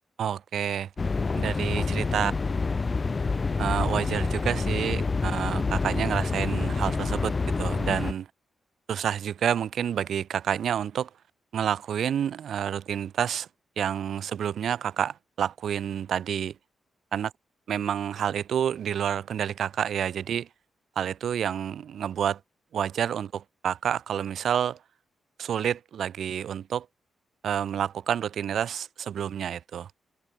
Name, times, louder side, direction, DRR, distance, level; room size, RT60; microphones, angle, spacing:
voice 1, 0.2-0.9 1.3-2.3 3.6-8.3 8.9-11.1 11.5-13.5 13.8-16.6 17.1-17.3 17.7-20.5 21.0-22.4 22.7-24.8 25.4-26.9 27.4-29.9, right 9 dB, 65° right, 1.9 m, -29 dB
sound 1, 1.0-8.1, left 4 dB, 25° left, 0.8 m, -27 dB
wide cardioid pair, 170°, 0 cm